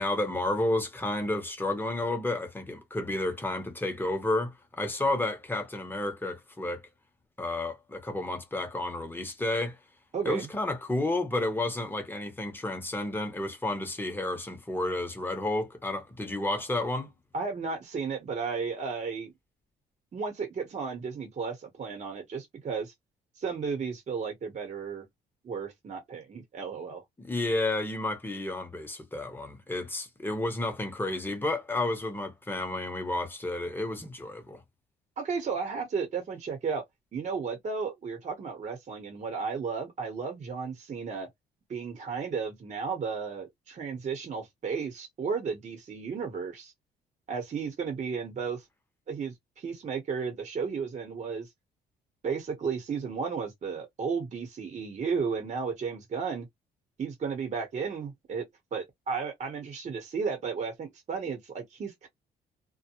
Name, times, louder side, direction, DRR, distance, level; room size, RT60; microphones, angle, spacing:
voice 1, 0.0-6.9 7.4-9.8 10.2-17.1 27.2-34.6, left 2 dB, 10° left, 0.8 m, -31 dB
voice 2, 10.1-10.5 17.3-19.3 20.1-22.9 23.4-25.1 25.4-27.0 35.2-36.8 37.1-41.3 41.7-46.7 47.3-48.6 49.1-51.5 52.2-56.5 57.0-58.4 58.7-62.1, right 5 dB, 45° right, 1.0 m, -34 dB
2.2 x 2.0 x 2.9 m
cardioid pair, 95°, 17 cm